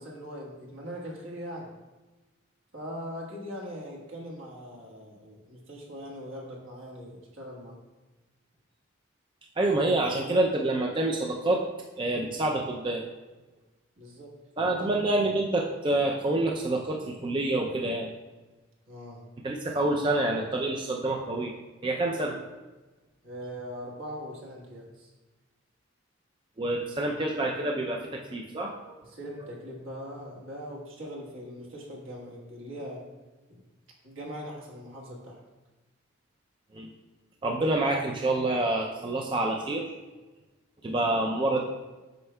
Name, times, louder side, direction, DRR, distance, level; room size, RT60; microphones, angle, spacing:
voice 1, 0.0-1.7 2.7-7.8 14.0-14.3 14.6-15.0 18.9-19.2 22.1-22.2 23.2-25.1 29.0-33.0 33.5-33.6 34.0-35.4 41.1-41.4, equal, 75° right, -2 dB, 1.4 m, -41 dB
voice 2, 9.6-11.6 12.0-13.0 14.6-18.1 19.4-21.5 21.8-22.3 26.6-28.0 28.3-29.0 36.7-36.9 37.4-39.9 40.8-41.6, right 2 dB, 25° right, 0 dB, 0.4 m, -27 dB
7.8 x 5.5 x 2.2 m, 1.2 s
head